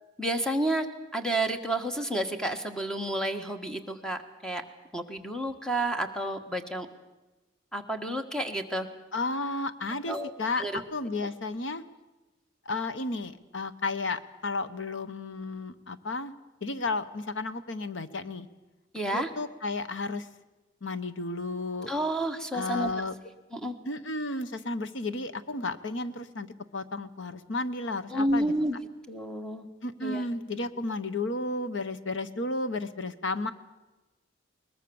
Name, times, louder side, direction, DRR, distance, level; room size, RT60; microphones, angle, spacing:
voice 1, 0.2-0.9 1.1-4.6 4.9-6.9 7.7-8.9 10.1-10.3 10.6-10.7 18.9-19.3 21.9-22.9 23.5-23.8 28.1-28.8 29.1-29.7 30.0-30.2, right 1 dB, 5° left, 6 dB, 1.5 m, -30 dB
voice 2, 9.1-11.8 12.7-16.3 16.6-18.5 19.1-20.3 20.8-21.9 22.5-23.1 23.9-26.5 26.7-28.5 29.8-33.5, left 2 dB, 75° left, 12 dB, 1.1 m, -33 dB
21.5 x 20.5 x 7.1 m, 1.1 s
head